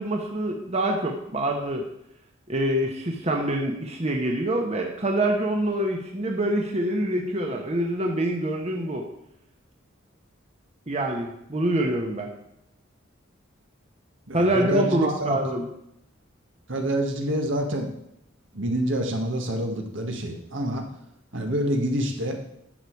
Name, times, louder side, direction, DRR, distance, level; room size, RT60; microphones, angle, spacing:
voice 1, 0.0-1.9 2.5-9.1 10.9-12.3 14.3-15.7, right 1 dB, 35° right, 1 dB, 1.1 m, -25 dB
voice 2, 14.3-15.4 16.7-17.9 18.5-20.8 21.3-22.4, right 1 dB, 70° right, 3 dB, 1.7 m, -27 dB
11.5 x 6.9 x 4.7 m, 0.78 s
head